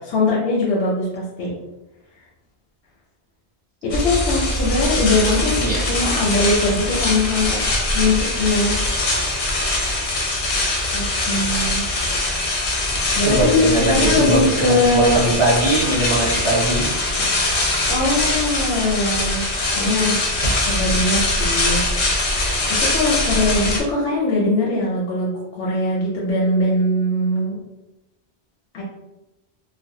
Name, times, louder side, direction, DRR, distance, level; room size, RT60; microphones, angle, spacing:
voice 1, 0.1-1.5 3.8-7.6 7.9-8.8 10.9-11.8 13.1-15.2 17.9-19.4 19.8-20.3 20.6-22.2 22.7-27.6 28.7-28.8, left 2 dB, 85° left, -5 dB, 0.9 m, -21 dB
sound 1, 3.9-23.8, left 2 dB, 55° left, 0.6 m, -22 dB
voice 2, 13.2-16.9, right 1 dB, 40° right, -7 dB, 0.4 m, -20 dB
2.5 x 2.0 x 2.6 m, 0.97 s
omnidirectional pair, 1.1 m